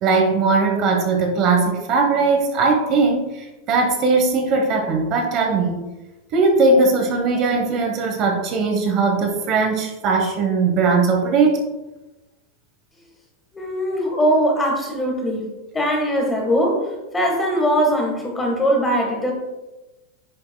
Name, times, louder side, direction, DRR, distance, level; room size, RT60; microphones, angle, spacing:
voice 1, 0.0-3.3 3.7-5.8 6.3-11.6, right 3 dB, 35° right, 3 dB, 1.0 m, -19 dB
voice 2, 13.5-15.5 15.7-19.3, equal, 10° left, 1 dB, 1.4 m, -21 dB
10.0 x 6.5 x 2.2 m, 1.0 s
supercardioid pair, 165°, 0 cm